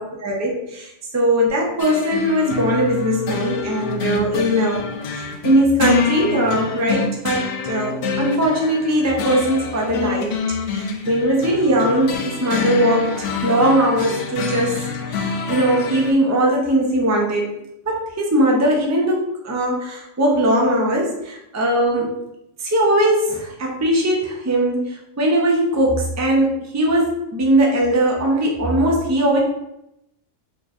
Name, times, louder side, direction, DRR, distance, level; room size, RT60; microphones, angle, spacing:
voice 1, 0.2-4.8 5.1-10.3 10.7-17.5 17.9-22.2 22.6-29.4, right 1 dB, 25° right, -1 dB, 0.4 m, -20 dB
sound 1, 1.8-16.1, left 5 dB, 70° left, 0.9 m, -26 dB
4.4 x 3.0 x 2.5 m, 0.84 s
omnidirectional pair, 1.3 m